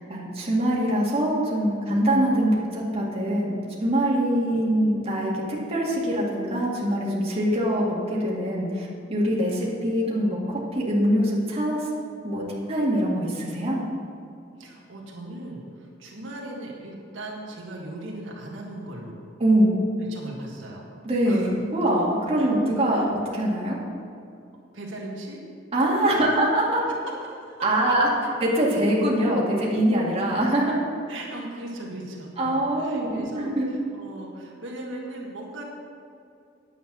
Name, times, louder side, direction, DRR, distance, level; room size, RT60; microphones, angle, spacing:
voice 1, 0.1-3.6 3.8-11.9 12.2-13.8 19.4-19.8 21.0-23.8 25.7-26.8 27.6-28.1 28.4-30.8 32.4-33.7, right 1 dB, 30° right, -5 dB, 2.1 m, -23 dB
voice 2, 14.6-19.2 20.0-20.9 21.3-21.5 22.4-22.5 24.7-25.4 26.0-26.1 27.2-27.6 30.3-30.4 31.1-33.5 33.9-35.6, right 1 dB, 80° right, -2 dB, 1.8 m, -38 dB
9.7 x 8.0 x 6.1 m, 2.4 s
head